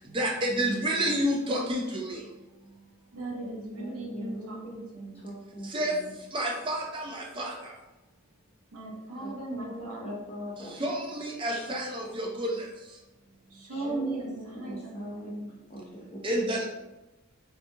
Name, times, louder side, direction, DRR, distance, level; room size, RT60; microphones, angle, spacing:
voice 1, 0.1-2.2 5.7-5.9 6.3-7.5 10.8-12.5 16.2-16.7, right 1 dB, 20° right, -1 dB, 0.4 m, -29 dB
voice 2, 3.1-5.3 8.7-10.3 13.5-15.6, right 2 dB, 75° right, -1 dB, 0.6 m, -37 dB
voice 3, 3.7-4.9 5.2-6.1 9.2-10.8 11.5-11.6 13.7-15.4 15.7-16.5, equal, 25° left, -3 dB, 0.6 m, -41 dB
2.7 x 2.3 x 2.6 m, 1.0 s
head